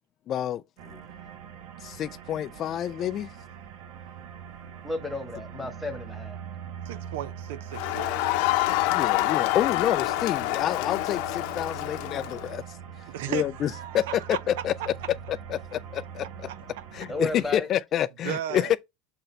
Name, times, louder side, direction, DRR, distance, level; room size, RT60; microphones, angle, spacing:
voice 1, 0.3-1.0 1.8-3.3 8.7-12.6 13.3-14.9 15.3-16.5 16.9-18.8, left 11 dB, 35° left, 0.3 m, -28 dB
sound 1, 0.8-17.6, right 8 dB, 70° right, 1.1 m, -42 dB
voice 2, 4.8-6.4 17.1-17.7, left 2 dB, ahead, 1.4 m, -33 dB
voice 3, 6.9-8.3 13.1-14.4 14.8-15.1 16.5-16.6 18.2-18.8, right 12 dB, 90° right, 0.6 m, -35 dB
Crowd, 7.7-12.5, left 17 dB, 65° left, 0.7 m, -27 dB
6.6 x 4.0 x 4.4 m
cardioid pair, 165°, 0 cm